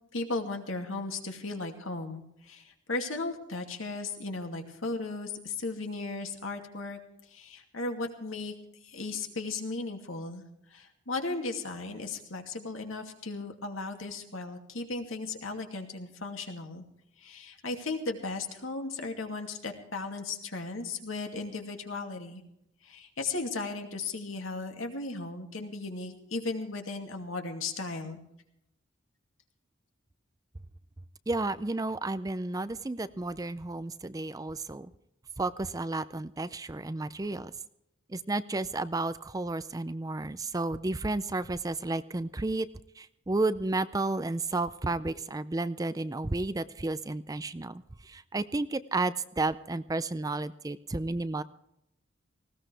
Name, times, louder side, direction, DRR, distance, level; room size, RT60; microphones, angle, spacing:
voice 1, 0.1-7.0 7.3-8.5 8.8-10.4 10.7-16.8 17.2-22.4 22.8-28.2, left 3 dB, 75° left, 4 dB, 2.5 m, -36 dB
voice 2, 31.3-34.9 35.4-37.5 38.1-42.7 43.0-51.4, right 2 dB, 15° right, 14 dB, 0.4 m, -32 dB
19.5 x 17.0 x 3.4 m, 0.78 s
head